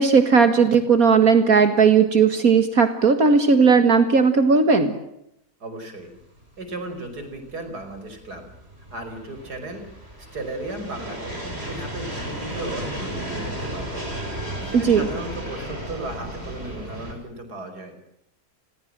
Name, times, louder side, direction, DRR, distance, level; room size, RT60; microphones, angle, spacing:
voice 1, 0.0-4.9 14.8-15.1, right 5 dB, 65° right, 8 dB, 2.3 m, -16 dB
voice 2, 5.6-6.1 6.6-8.4 8.9-9.9 10.3-11.4 11.7-14.1 14.4-17.9, right 2 dB, 90° right, 8 dB, 5.9 m, -35 dB
sound 1, 6.2-17.1, right 1 dB, 40° right, 7.1 m, -34 dB
30.0 x 22.5 x 7.7 m, 0.79 s
omnidirectional pair, 1.6 m